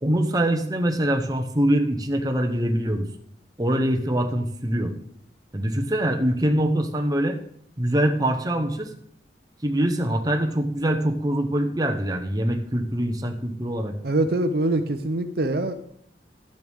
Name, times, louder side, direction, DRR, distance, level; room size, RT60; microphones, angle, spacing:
voice 1, 0.0-3.1 3.6-4.9 5.5-7.4 7.8-8.9 9.6-13.9, right 1 dB, 20° right, 5 dB, 0.9 m, -24 dB
voice 2, 14.0-15.7, right 2 dB, 55° right, 8 dB, 0.6 m, -23 dB
12.5 x 9.2 x 3.6 m, 0.67 s
head